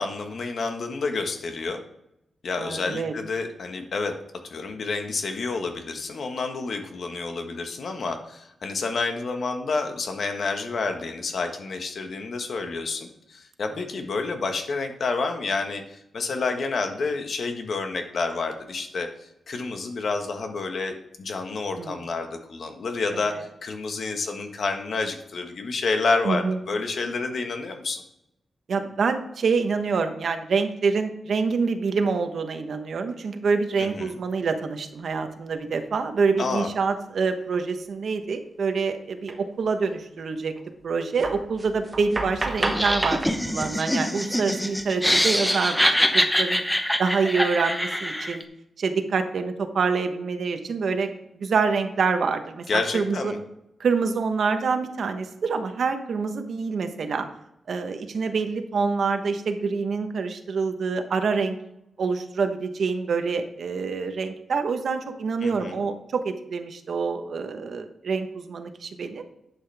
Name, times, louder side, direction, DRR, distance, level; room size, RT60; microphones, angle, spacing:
voice 1, 0.0-1.8 2.4-4.1 4.4-28.0 33.8-34.1 36.4-36.7 52.7-53.4 65.4-65.8, left 4 dB, 60° left, 5 dB, 1.4 m, -29 dB
voice 2, 2.6-3.1 21.8-22.0 23.1-23.2 26.2-26.6 28.7-40.5 40.8-46.6 47.0-48.4 48.8-53.3 53.8-57.3 57.7-61.6 62.0-69.2, right 5 dB, 65° right, 7 dB, 1.1 m, -26 dB
sound 1, 37.5-37.6 39.3-39.4 39.6-39.9 40.6-40.7 41.2-43.3, right 2 dB, 20° right, 1.2 m, -30 dB
Laughter, 42.6-48.4, equal, 5° left, 0.9 m, -24 dB
11.5 x 7.9 x 3.5 m, 0.83 s
wide cardioid pair, 135°, 0 cm